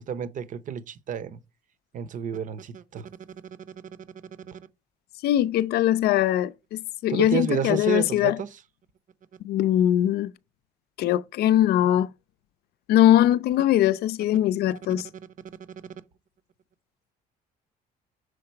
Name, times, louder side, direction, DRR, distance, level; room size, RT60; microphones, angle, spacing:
voice 1, 0.1-1.4 1.9-3.1 4.5-4.6 7.1-8.5, right 7 dB, 50° right, 0.8 m, -30 dB
voice 2, 5.2-8.4 9.4-10.3 11.0-12.1 12.9-15.1, left 12 dB, 70° left, 0.5 m, -21 dB
6.5 x 3.8 x 4.4 m
cardioid pair, 110°, 17 cm